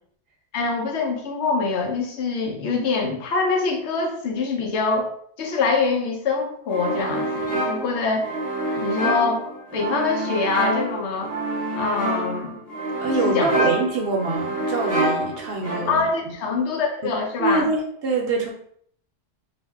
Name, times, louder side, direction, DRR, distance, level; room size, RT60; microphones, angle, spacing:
voice 1, 0.5-5.1 5.4-8.4 8.8-9.4 9.7-11.4 11.8-12.6 13.1-13.6 15.9-17.7, left 4 dB, 70° left, 2 dB, 0.9 m, -24 dB
sound 1, 6.7-16.2, right 1 dB, 20° right, 0.7 m, -27 dB
voice 2, 13.0-16.3 17.0-18.5, right 3 dB, 65° right, 0 dB, 0.7 m, -25 dB
2.5 x 2.1 x 3.4 m, 0.64 s
omnidirectional pair, 1.2 m